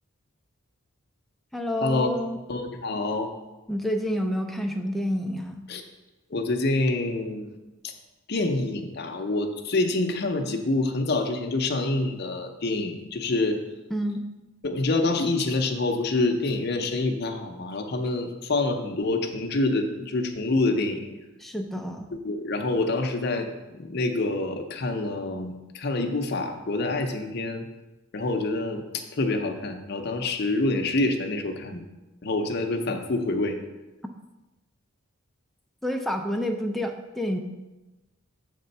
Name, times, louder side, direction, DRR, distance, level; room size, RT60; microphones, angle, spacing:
voice 1, 1.5-2.4 3.7-5.7 13.9-14.2 21.4-22.1 35.8-37.4, equal, ahead, 3 dB, 0.4 m, -29 dB
voice 2, 2.5-3.3 5.7-5.8 6.3-7.6 7.8-7.9 8.3-13.6 14.6-21.1 22.1-27.7 28.1-31.8 32.2-33.6, left 2 dB, 50° left, 4 dB, 0.6 m, -27 dB
6.7 x 3.6 x 5.3 m, 1.1 s
head